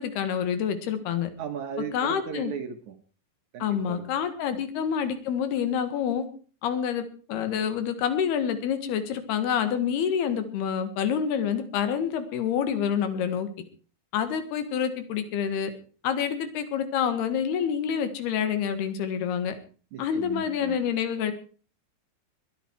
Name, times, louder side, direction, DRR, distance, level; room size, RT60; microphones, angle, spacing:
voice 1, 0.0-1.3 1.9-2.5 3.6-6.3 6.6-13.5 14.1-15.7 16.0-19.6 20.0-21.3, left 8 dB, 80° left, 10 dB, 3.7 m, -27 dB
voice 2, 1.4-3.0 3.5-4.1 4.5-4.6 19.9-20.9, right 7 dB, 65° right, 7 dB, 2.2 m, -36 dB
21.5 x 10.5 x 4.7 m, 0.39 s
omnidirectional pair, 4.5 m